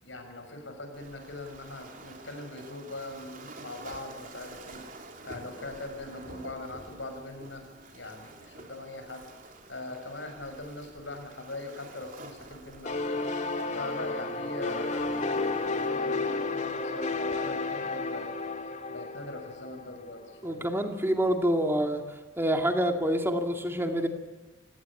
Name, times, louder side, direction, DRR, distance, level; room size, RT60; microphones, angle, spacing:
voice 1, 0.0-4.9 5.2-7.6 7.9-9.3 9.7-18.3 18.6-20.7, left 2 dB, 80° left, 5 dB, 6.9 m, -41 dB
Waves surf, 0.9-15.9, right 2 dB, 45° right, 3.3 m, -48 dB
sound 1, 12.8-20.3, left 3 dB, 40° left, 2.3 m, -32 dB
voice 2, 20.4-22.0 22.4-24.1, equal, 15° right, 5 dB, 2.1 m, -27 dB
29.0 x 18.0 x 9.0 m, 1.3 s
head